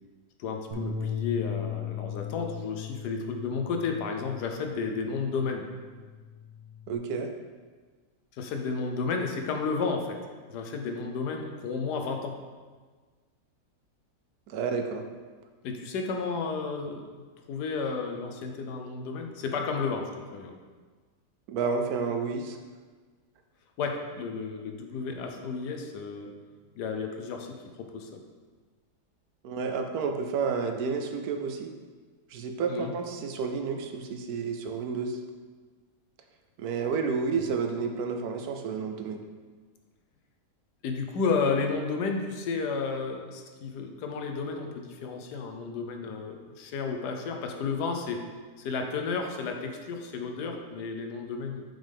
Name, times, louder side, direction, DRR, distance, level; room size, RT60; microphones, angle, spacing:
voice 1, 0.4-5.7 8.3-10.2 10.5-12.4 15.6-20.6 23.8-26.3 26.8-28.2 32.7-32.9 37.4-37.5 40.8-48.2 48.6-51.6, left 4 dB, 80° left, 3 dB, 1.3 m, -32 dB
Bass guitar, 0.7-5.2 5.6-7.0, left 7 dB, 85° right, 1.9 m, -37 dB
voice 2, 6.9-7.3 14.5-15.0 21.5-22.6 29.4-31.7 32.3-35.2 36.6-39.2, right 5 dB, 70° right, 5 dB, 1.0 m, -30 dB
7.4 x 5.3 x 3.5 m, 1.4 s
omnidirectional pair, 1.8 m